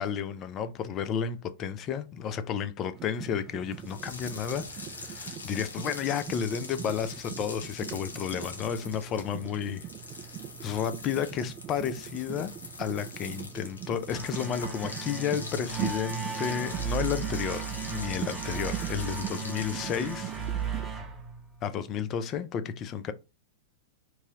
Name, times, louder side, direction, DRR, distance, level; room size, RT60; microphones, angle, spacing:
voice 1, 0.0-9.9 10.6-12.5 12.8-20.3 21.6-23.1, left 8 dB, 35° left, 0.4 m, -32 dB
sound 1, 3.0-20.9, right 12 dB, 35° right, 0.3 m, -41 dB
sound 2, 3.8-20.6, left 3 dB, 85° left, 1.0 m, -43 dB
sound 3, 14.1-21.9, right 6 dB, 15° right, 0.9 m, -36 dB
3.1 x 2.7 x 3.6 m
hypercardioid pair, 105°, 0 cm